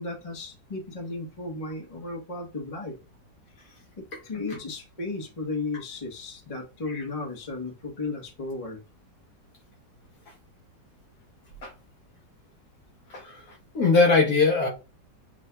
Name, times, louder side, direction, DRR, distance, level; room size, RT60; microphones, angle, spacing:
voice 1, 0.0-3.0 3.6-3.7 4.2-8.8, left 3 dB, 25° left, 1.0 m, -35 dB
voice 2, 13.1-14.7, left 3 dB, 60° left, 1.5 m, -22 dB
7.4 x 2.6 x 2.2 m
omnidirectional pair, 1.9 m